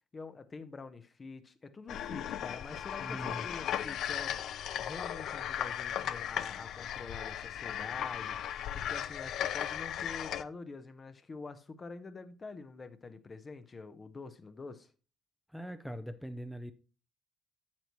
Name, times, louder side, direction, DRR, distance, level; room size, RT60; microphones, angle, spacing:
voice 1, 0.1-14.9, left 4 dB, 35° left, 1.0 m, -46 dB
sound 1, 1.9-10.4, left 10 dB, 60° left, 0.4 m, -36 dB
voice 2, 3.0-3.5 15.5-16.7, equal, ahead, 0.7 m, -41 dB
8.6 x 8.0 x 3.1 m
figure-of-eight pair, 50°, 0 cm